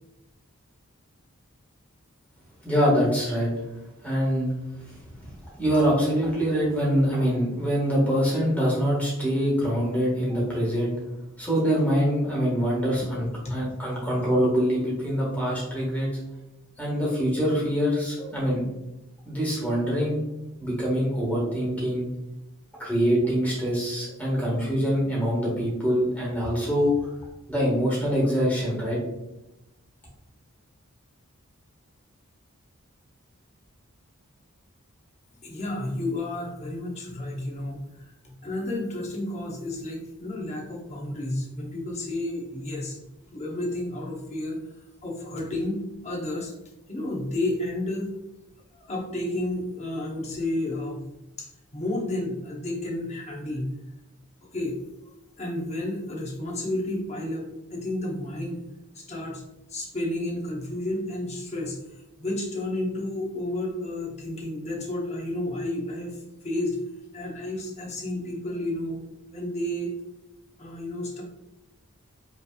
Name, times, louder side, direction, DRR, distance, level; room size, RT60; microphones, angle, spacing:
voice 1, 2.6-3.5 4.0-4.5 4.8-5.0 5.3-10.9 11.4-16.1 16.8-18.6 19.2-20.2 20.6-22.1 22.8-26.9 27.5-29.0, equal, 5° left, -5 dB, 1.4 m, -24 dB
voice 2, 35.4-43.0 43.3-44.6 45.0-46.5 46.9-48.1 48.7-51.0 51.4-53.7 54.5-54.8 55.4-58.6 58.9-59.4 59.7-66.8 67.1-69.0 69.3-69.9 70.6-71.2, left 1 dB, 30° left, -2 dB, 0.8 m, -31 dB
5.3 x 3.3 x 2.3 m, 0.95 s
head